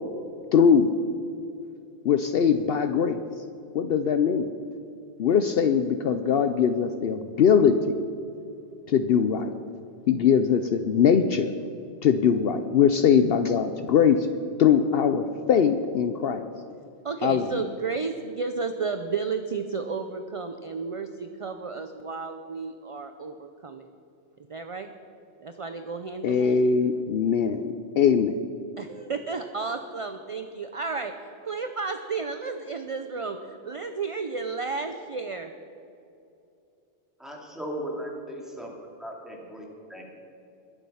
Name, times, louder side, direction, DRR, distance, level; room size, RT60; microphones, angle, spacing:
voice 1, 0.5-0.9 2.0-3.2 3.7-4.5 5.2-7.8 8.9-9.5 10.1-11.5 12.0-14.3 14.6-16.5 17.2-17.5 26.2-28.4, left 7 dB, 65° left, 9 dB, 0.8 m, -21 dB
voice 2, 17.0-23.9 24.5-24.9 25.4-26.6 28.8-31.1 31.4-35.5, right 4 dB, 40° right, 7 dB, 0.5 m, -32 dB
voice 3, 37.2-38.7 39.0-40.0, right 1 dB, ahead, -2 dB, 2.4 m, -37 dB
21.5 x 7.5 x 5.6 m, 2.7 s
omnidirectional pair, 1.2 m